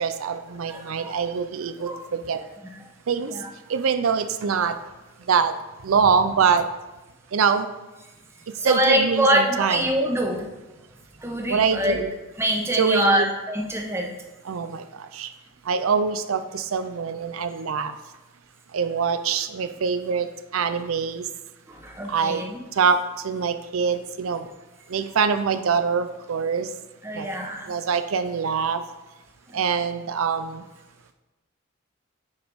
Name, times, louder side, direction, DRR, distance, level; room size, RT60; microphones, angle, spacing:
voice 1, 0.0-1.9 2.3-2.4 3.1-3.3 3.7-4.7 5.3-5.5 5.8-6.6 7.3-7.7 8.6-9.8 11.5-12.1 12.7-13.3 14.5-14.8 15.1-15.3 15.7-17.9 18.7-20.3 20.5-21.3 22.1-22.4 22.8-23.0 23.2-24.4 24.9-26.7 27.2-27.3 27.7-28.8 29.5-30.6, right 6 dB, 90° right, 10 dB, 0.5 m, -24 dB
voice 2, 0.7-1.1 1.8-2.0 3.3-3.5 8.6-10.5 11.2-12.0 12.4-14.1 21.7-22.6 27.0-27.8, right 1 dB, 15° right, 1 dB, 1.1 m, -24 dB
9.2 x 5.2 x 4.7 m, 1.1 s
head